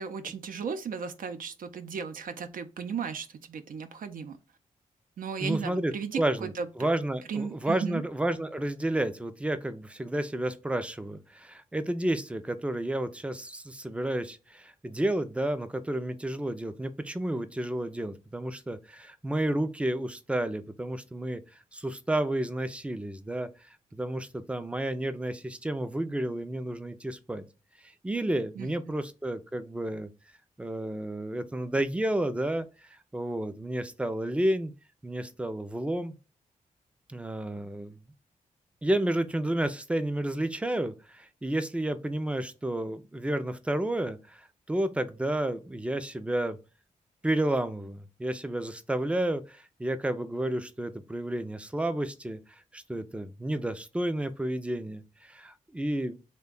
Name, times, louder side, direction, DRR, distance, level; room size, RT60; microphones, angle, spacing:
voice 1, 0.0-4.4 5.2-6.7 7.3-8.0 28.6-28.7, right 6 dB, 75° right, 0.5 m, -35 dB
voice 2, 5.4-21.4 21.7-27.4 28.0-30.1 30.6-34.7 35.0-36.1 37.1-38.0 38.8-46.6 47.2-56.2, right 1 dB, 10° right, 0.4 m, -31 dB
3.4 x 2.2 x 3.7 m
wide cardioid pair, 110°, 14 cm